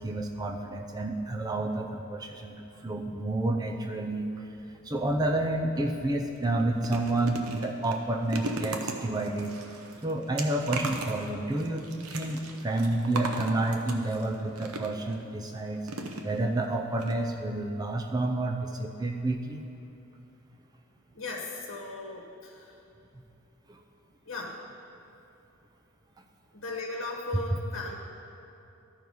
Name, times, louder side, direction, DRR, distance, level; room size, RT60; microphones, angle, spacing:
voice 1, 0.0-4.5 4.8-9.6 10.0-15.8 16.2-19.6 23.7-23.8, right 2 dB, 15° right, 3 dB, 0.5 m, -30 dB
sound 1, 5.8-6.0 6.4-15.1 15.8-16.6 17.0-17.1 17.4-17.5, right 2 dB, 85° right, 0.8 m, -38 dB
voice 2, 21.1-22.7 24.3-24.6 26.5-27.9, left 2 dB, 60° left, -3 dB, 1.2 m, -37 dB
13.0 x 4.6 x 5.4 m, 2.9 s
head